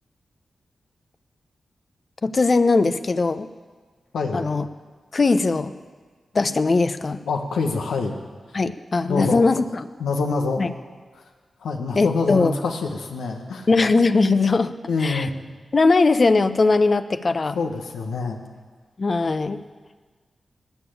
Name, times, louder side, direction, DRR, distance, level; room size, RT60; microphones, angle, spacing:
voice 1, 2.2-3.5 4.3-4.7 5.1-5.7 6.3-7.2 8.5-9.9 10.6-10.7 11.9-12.5 13.7-14.7 15.0-15.3 15.7-17.6 19.0-19.6, left 3 dB, 55° left, 11 dB, 0.8 m, -20 dB
voice 2, 4.1-4.4 7.3-8.1 9.1-9.4 10.0-10.7 11.6-13.7 14.9-15.3 17.5-18.4, left 4 dB, 90° left, 3 dB, 1.5 m, -25 dB
19.5 x 7.1 x 8.7 m, 1.5 s
supercardioid pair, 40°, 0 cm